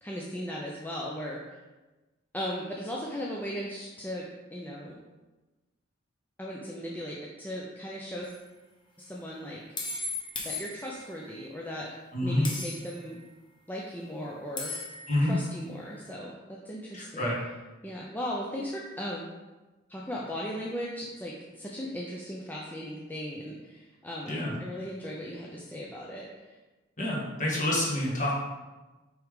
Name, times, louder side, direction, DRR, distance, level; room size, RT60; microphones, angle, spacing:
voice 1, 0.0-1.4 2.3-4.3 4.5-5.0 6.4-8.3 9.0-9.6 10.4-11.9 12.2-13.2 13.7-14.7 15.2-17.2 17.8-19.2 19.9-24.3 24.6-26.3, equal, 10° left, -4 dB, 0.6 m, -37 dB
sound 1, 8.2-8.4 9.8-11.2 12.4-13.1 14.6-15.2, left 3 dB, 25° left, 1.1 m, -36 dB
voice 2, 12.1-12.5 15.1-15.4 16.9-17.4 24.3-24.6 27.0-28.3, left 1 dB, 40° left, -5 dB, 1.8 m, -28 dB
5.9 x 4.9 x 3.7 m, 1.1 s
head